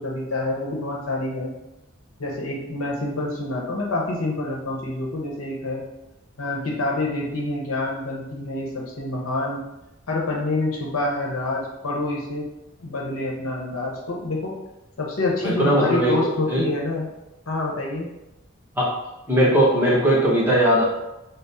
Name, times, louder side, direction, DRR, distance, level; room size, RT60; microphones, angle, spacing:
voice 1, 0.0-1.5 2.2-5.8 6.4-9.6 10.1-12.4 12.8-14.5 15.0-17.1 17.5-18.1, left 2 dB, 85° left, -2 dB, 0.9 m, -27 dB
voice 2, 15.4-16.7 18.8-18.9 19.3-20.8, right 1 dB, 10° right, -5 dB, 0.8 m, -19 dB
3.6 x 2.0 x 4.1 m, 0.94 s
head